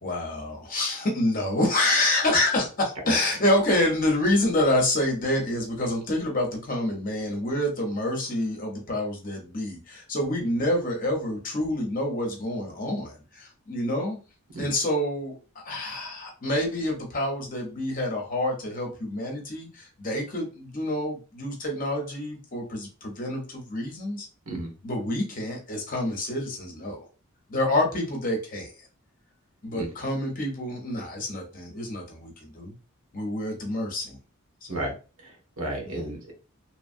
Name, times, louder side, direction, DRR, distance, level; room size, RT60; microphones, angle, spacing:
voice 1, 0.0-14.2 14.6-24.2 24.8-27.0 27.5-28.7 29.6-32.7 33.1-34.2 34.7-34.8 35.8-36.0, left 1 dB, 40° left, 1 dB, 0.9 m, -27 dB
voice 2, 35.2-36.3, right 1 dB, 80° right, 1 dB, 1.1 m, -33 dB
2.9 x 2.3 x 2.6 m, 0.33 s
head